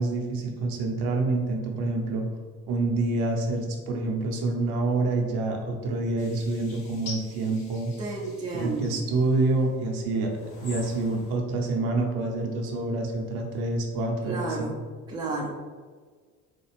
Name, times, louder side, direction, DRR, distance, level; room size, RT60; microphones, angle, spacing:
voice 1, 0.0-2.3 2.7-7.9 8.5-10.3 10.6-14.7, right 2 dB, 50° right, 1 dB, 0.8 m, -27 dB
sound 1, 6.2-9.7 10.3-11.4, left 3 dB, 50° left, 1.2 m, -45 dB
voice 2, 8.0-8.9 14.2-14.8 15.1-15.6, right 3 dB, 10° right, -2 dB, 0.5 m, -31 dB
4.1 x 2.3 x 3.2 m, 1.5 s
figure-of-eight pair, 55°, 49 cm